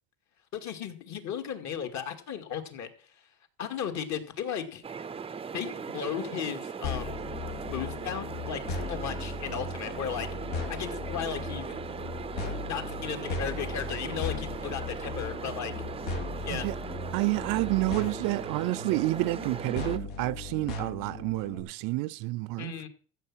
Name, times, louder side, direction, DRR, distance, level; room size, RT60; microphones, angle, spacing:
voice 1, 0.5-2.9 3.6-4.8 5.5-10.3 10.7-11.8 12.7-15.7 16.4-16.7 22.6-22.9, left 8 dB, 55° left, 2.4 m, -35 dB
sound 1, 4.8-20.0, right 6 dB, 15° right, 0.5 m, -39 dB
sound 2, 6.8-21.6, left 3 dB, 85° left, 4.2 m, -37 dB
voice 2, 17.1-22.7, right 21 dB, 70° right, 0.6 m, -29 dB
14.5 x 7.4 x 6.2 m
cardioid pair, 125°, 34 cm